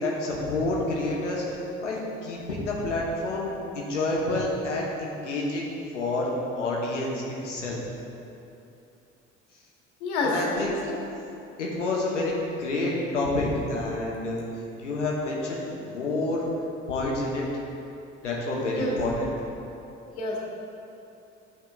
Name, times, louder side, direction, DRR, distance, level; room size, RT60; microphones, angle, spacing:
voice 1, 0.0-1.4 1.8-5.7 5.9-7.8 10.2-10.8 11.6-14.4 14.8-16.5 16.9-17.5 18.2-19.3, left 2 dB, 85° left, -3 dB, 1.0 m, -28 dB
voice 2, 10.0-10.9 18.8-19.0 20.2-20.4, left 2 dB, 70° left, -3 dB, 1.3 m, -28 dB
11.0 x 6.0 x 2.3 m, 2.8 s
figure-of-eight pair, 50°, 35 cm